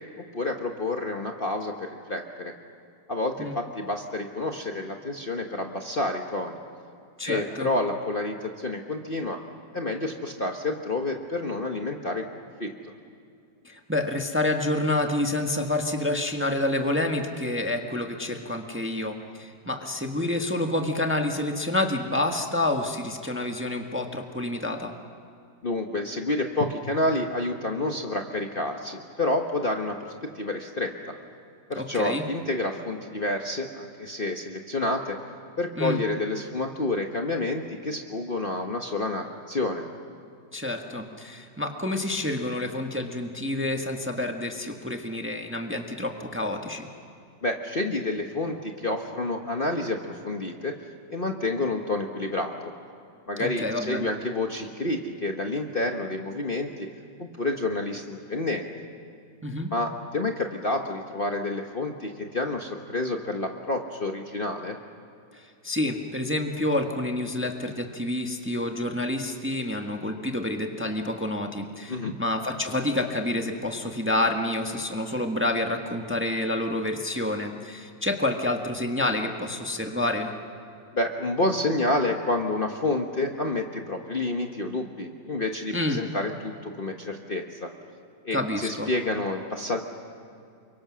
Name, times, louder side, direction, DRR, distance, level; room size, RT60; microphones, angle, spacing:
voice 1, 0.3-2.5 3.1-6.6 7.2-9.4 9.7-12.3 12.6-12.9 25.6-31.1 31.7-35.2 35.6-39.8 47.4-50.7 51.1-52.7 53.3-56.9 57.2-58.7 59.7-64.8 71.9-72.1 80.9-87.7 88.2-89.8, left 2 dB, 35° left, 3 dB, 1.3 m, -29 dB
voice 2, 7.2-7.7 13.6-24.9 31.8-32.2 35.8-36.0 40.5-46.9 53.4-54.1 59.4-59.7 65.3-80.3 85.7-86.0 88.3-88.9, left 1 dB, 5° right, 3 dB, 1.3 m, -28 dB
29.0 x 24.0 x 6.3 m, 2.4 s
omnidirectional pair, 1.9 m